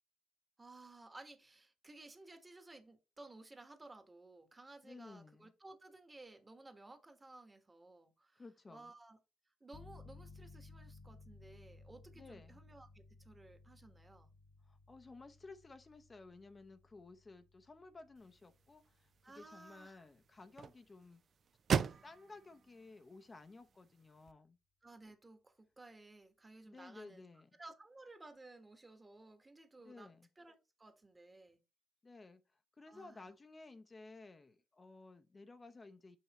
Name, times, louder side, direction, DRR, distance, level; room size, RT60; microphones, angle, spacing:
voice 1, 0.6-9.2 9.6-14.3 19.2-20.1 24.8-27.2 27.6-31.6 32.9-33.3, right 2 dB, 20° right, 1.3 m, -57 dB
voice 2, 4.8-5.5 8.3-8.9 12.1-12.6 14.6-21.2 22.0-24.6 26.7-27.5 29.8-30.3 32.0-36.2, left 3 dB, 30° left, 0.7 m, -56 dB
sound 1, 9.7-20.3, left 3 dB, 60° left, 1.1 m, -60 dB
sound 2, 18.2-24.3, right 6 dB, 50° right, 0.5 m, -42 dB
6.9 x 5.6 x 3.0 m
cardioid pair, 90°, 0 cm